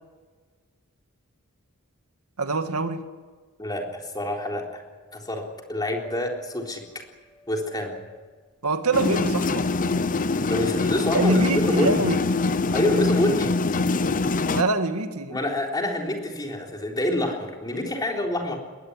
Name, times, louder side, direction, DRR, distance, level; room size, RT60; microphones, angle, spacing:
voice 1, 2.4-3.0 8.6-9.7 11.1-12.2 14.5-15.4, right 3 dB, 85° right, 8 dB, 1.8 m, -24 dB
voice 2, 3.6-4.6 5.1-5.4 5.7-6.8 7.5-7.9 10.5-12.1 12.7-13.5 15.3-18.6, left 1 dB, 20° left, 1 dB, 3.8 m, -27 dB
Piano, 6.0-11.9, left 1 dB, ahead, 4.3 m, -51 dB
sound 1, 8.9-14.6, left 3 dB, 40° left, 0.8 m, -24 dB
21.0 x 18.5 x 9.8 m, 1.4 s
head